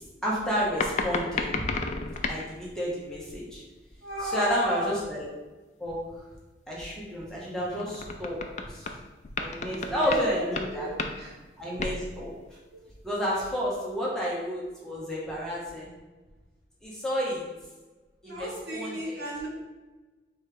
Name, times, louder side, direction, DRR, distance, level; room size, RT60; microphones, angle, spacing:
voice 1, 0.2-1.7 2.3-3.6 4.2-5.2 5.8-6.0 6.7-9.0 9.4-10.9 11.6-12.3 13.0-15.9 16.8-17.4 18.2-19.2, equal, 5° left, -6 dB, 0.9 m, -31 dB
sound 1, 0.7-2.5 7.8-9.0 9.2-10.3 10.6-10.7 11.0-11.3 11.8-12.0 12.4-12.5, left 4 dB, 40° left, 0.4 m, -32 dB
voice 2, 4.0-5.0 9.6-11.6 18.2-19.5, equal, 65° right, -3 dB, 1.2 m, -34 dB
3.4 x 3.2 x 4.8 m, 1.2 s
head